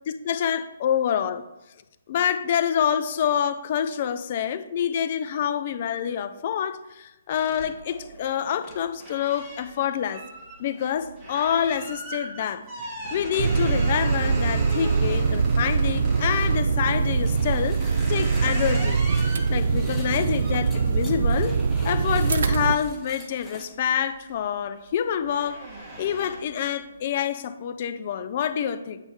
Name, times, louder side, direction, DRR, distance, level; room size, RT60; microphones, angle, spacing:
voice 1, 0.3-1.4 2.1-10.3 10.6-12.6 13.1-17.8 18.1-19.0 19.5-21.6 21.8-25.6 26.0-29.0, left 9 dB, 40° left, 0.4 m, -27 dB
sound 1, 7.3-16.7 17.3-23.7 24.1-24.5 24.8-26.7, right 1 dB, 15° right, 1.6 m, -39 dB
sound 2, 13.4-22.8, right 5 dB, 60° right, 0.3 m, -23 dB
sound 3, 17.2-23.6, left 2 dB, 5° left, 0.8 m, -47 dB
8.2 x 3.3 x 4.7 m
hypercardioid pair, 155°, 0 cm